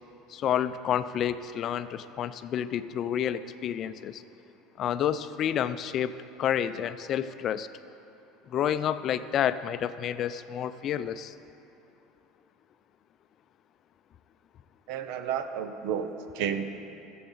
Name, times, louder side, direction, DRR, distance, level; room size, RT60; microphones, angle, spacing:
voice 1, 0.3-4.2 4.8-6.1 6.4-7.7 8.5-11.3, left 9 dB, 45° left, 12 dB, 0.4 m, -29 dB
voice 2, 14.9-16.7, right 8 dB, 70° right, 9 dB, 0.8 m, -31 dB
22.0 x 7.8 x 3.9 m, 2.9 s
supercardioid pair, 120°, 0 cm